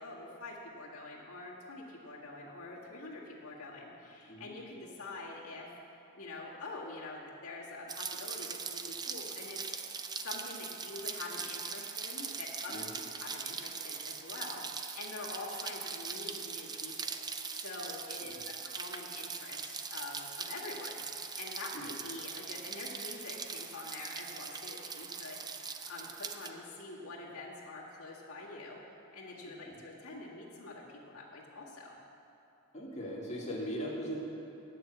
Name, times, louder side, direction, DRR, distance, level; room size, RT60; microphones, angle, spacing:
voice 1, 0.0-5.7 6.1-28.8 29.1-32.0, left 2 dB, 75° left, -6 dB, 1.8 m, -46 dB
Rain, 7.9-26.5, right 5 dB, 20° right, 0.4 m, -41 dB
voice 2, 29.4-29.8 32.7-34.2, equal, 30° left, -5 dB, 2.1 m, -40 dB
9.9 x 6.8 x 7.9 m, 2.7 s
head